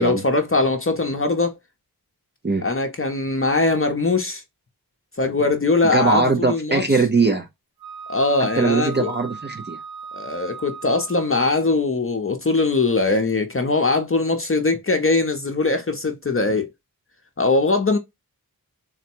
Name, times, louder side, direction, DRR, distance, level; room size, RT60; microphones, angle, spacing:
voice 1, 0.0-1.5 2.6-4.4 5.2-6.8 8.1-9.1 10.1-16.7 17.4-18.0, left 3 dB, 35° left, 0.7 m, -21 dB
voice 2, 5.9-7.5 8.4-9.8, right 3 dB, 30° right, 0.6 m, -21 dB
Wind instrument woodwind instrument, 7.8-11.4, right 6 dB, 80° right, 1.5 m, -37 dB
3.9 x 2.1 x 4.4 m
wide cardioid pair, 70°, 37 cm